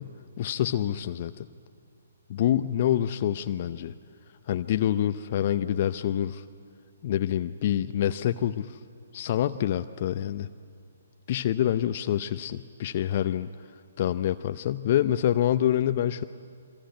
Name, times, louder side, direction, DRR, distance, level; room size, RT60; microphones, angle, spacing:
voice 1, 0.0-1.5 2.3-3.9 4.5-6.4 7.0-8.8 9.1-10.5 11.3-13.5 14.0-16.2, left 11 dB, 40° left, 11 dB, 0.6 m, -26 dB
25.5 x 25.0 x 9.2 m, 2.2 s
figure-of-eight pair, 130°, 0 cm